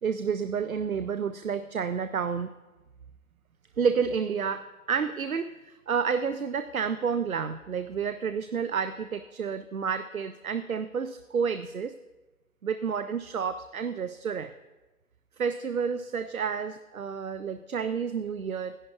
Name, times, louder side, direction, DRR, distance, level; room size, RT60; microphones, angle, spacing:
voice 1, 0.0-2.5 3.8-12.0 12.6-14.5 15.4-18.8, right 6 dB, 65° right, 12 dB, 0.5 m, -30 dB
15.0 x 11.0 x 2.3 m, 1.1 s
figure-of-eight pair, 170°, 45 cm